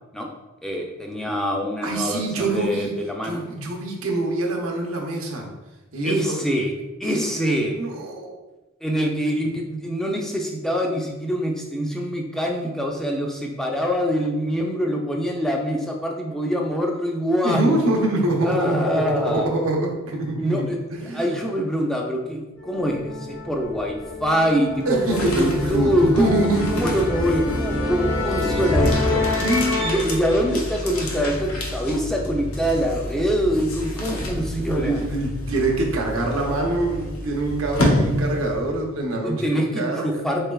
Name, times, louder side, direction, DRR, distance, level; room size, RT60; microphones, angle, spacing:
voice 1, 0.6-3.4 6.0-6.7 7.0-7.8 8.8-17.8 18.4-19.5 20.4-20.8 21.1-29.3 29.8-35.0 39.2-40.5, equal, ahead, 0 dB, 0.3 m, -24 dB
voice 2, 1.8-2.9 3.2-5.5 5.9-6.4 7.0-7.3 7.7-8.4 17.4-21.3 24.9-27.2 29.4-29.8 34.6-40.2, right 2 dB, 80° right, 1 dB, 0.7 m, -25 dB
sound 1, 22.6-31.6, left 2 dB, 70° left, 1.0 m, -27 dB
sound 2, 24.8-38.9, left 1 dB, 90° left, 0.7 m, -30 dB
3.7 x 3.3 x 2.3 m, 1.1 s
head